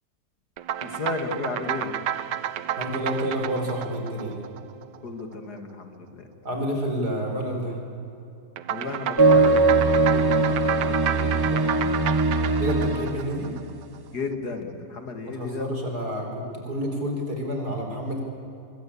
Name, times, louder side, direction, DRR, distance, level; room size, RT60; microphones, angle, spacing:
sound 1, 0.6-5.2 8.6-14.0, right 10 dB, 85° right, 1.5 m, -31 dB
voice 1, 0.8-1.9 5.0-6.3 8.7-12.0 14.1-15.7, left 4 dB, 65° left, 6 dB, 2.7 m, -34 dB
voice 2, 2.8-4.4 6.4-7.8 12.6-13.5 15.3-18.2, equal, 65° right, 2 dB, 5.1 m, -29 dB
sound 2, 9.2-13.3, right 3 dB, 30° right, 0.4 m, -20 dB
25.5 x 22.0 x 8.6 m, 2.8 s
omnidirectional pair, 1.8 m